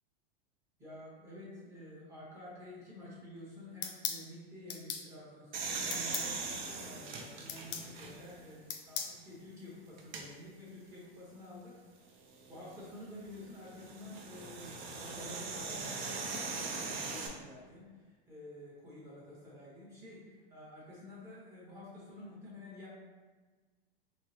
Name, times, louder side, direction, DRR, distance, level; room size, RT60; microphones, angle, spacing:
voice 1, 0.8-6.4 6.8-11.7 12.5-22.9, left 1 dB, 10° right, -8 dB, 0.9 m, -50 dB
sound 1, 3.8-4.2 4.7-5.1 5.9-6.3 7.5-7.9 8.7-9.2, left 8 dB, 60° left, 0.5 m, -38 dB
sound 2, 5.5-8.4 9.0-9.1 10.0-10.2 12.4-17.3, right 4 dB, 50° right, 0.5 m, -40 dB
4.4 x 2.1 x 2.7 m, 1.4 s
supercardioid pair, 155°, 30 cm